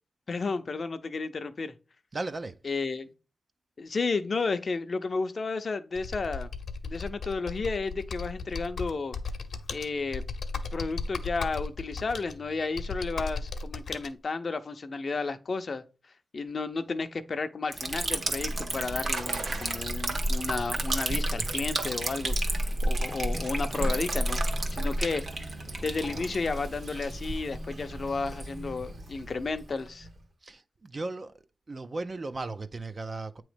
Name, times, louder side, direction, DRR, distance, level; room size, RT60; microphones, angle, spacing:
voice 1, 0.3-1.7 2.6-3.1 3.8-6.5 6.8-9.1 9.7-10.2 10.7-15.8 16.3-24.4 24.7-25.2 25.8-30.1, left 4 dB, 45° left, 0.6 m, -32 dB
voice 2, 2.1-2.6 25.7-26.3 30.4-31.3 31.7-33.4, right 3 dB, 35° right, 0.4 m, -37 dB
Computer keyboard, 5.9-14.1, left 4 dB, 80° left, 0.8 m, -36 dB
Liquid, 17.7-30.2, right 1 dB, 50° right, 1.2 m, -31 dB
sound 1, 18.2-24.9, right 3 dB, 70° right, 1.1 m, -46 dB
8.7 x 3.1 x 5.0 m
wide cardioid pair, 150°, 0 cm